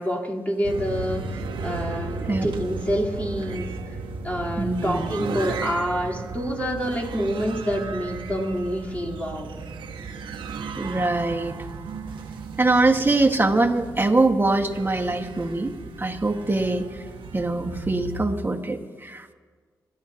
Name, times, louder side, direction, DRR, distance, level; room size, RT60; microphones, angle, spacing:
voice 1, 0.0-3.7 4.2-9.6, equal, 20° left, -5 dB, 3.9 m, -27 dB
sound 1, 0.6-18.2, right 4 dB, 85° right, 1.1 m, -35 dB
voice 2, 4.6-5.1 10.8-11.6 12.6-17.0 17.3-19.3, right 2 dB, 25° right, 2 dB, 1.7 m, -23 dB
26.0 x 12.5 x 3.0 m, 1.5 s
cardioid pair, 50°, 8 cm